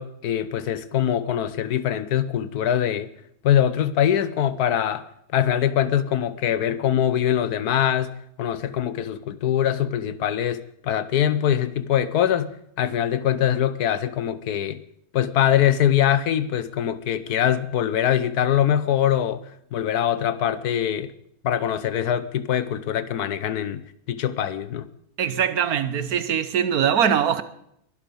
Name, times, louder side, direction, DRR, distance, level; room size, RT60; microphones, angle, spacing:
voice 1, 0.0-3.1 3.4-5.0 5.3-14.8 15.1-19.4 19.7-21.1 21.4-23.8 24.1-24.9, left 10 dB, 80° left, 1.4 m, -23 dB
voice 2, 25.2-27.4, right 8 dB, 70° right, 1.5 m, -22 dB
22.5 x 12.0 x 5.3 m
omnidirectional pair, 1.6 m